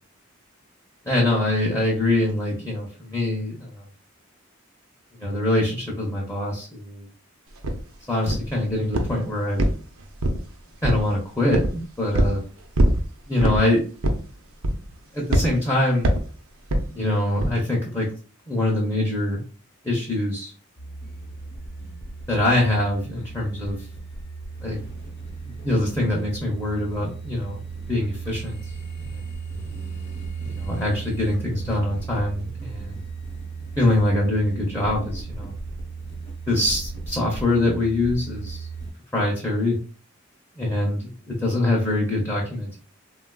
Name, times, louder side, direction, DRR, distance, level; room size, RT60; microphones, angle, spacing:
voice 1, 1.0-3.8 5.2-7.1 8.1-9.6 10.8-12.4 13.3-13.8 15.1-16.1 16.9-18.1 18.5-19.4 19.8-20.5 22.3-23.9 24.6-24.8 25.4-27.6 27.9-28.6 29.0-29.1 30.4-33.0 33.8-35.5 36.5-38.7 39.1-39.8 40.6-42.8, left 1 dB, 15° left, -3 dB, 0.6 m, -24 dB
sound 1, 7.6-7.8 8.3-8.6 8.9-9.2 9.6-10.5 10.8-11.1 11.5-11.8 12.1-12.4 12.8-13.0 13.4-13.6 14.0-14.3 14.6-14.9 15.3-15.5 16.0-16.3 16.7-16.9 17.4-17.6, right 1 dB, 90° right, 0.6 m, -21 dB
sound 2, 20.8-38.9, right 4 dB, 45° left, 0.9 m, -36 dB
3.4 x 2.3 x 2.2 m, 0.39 s
head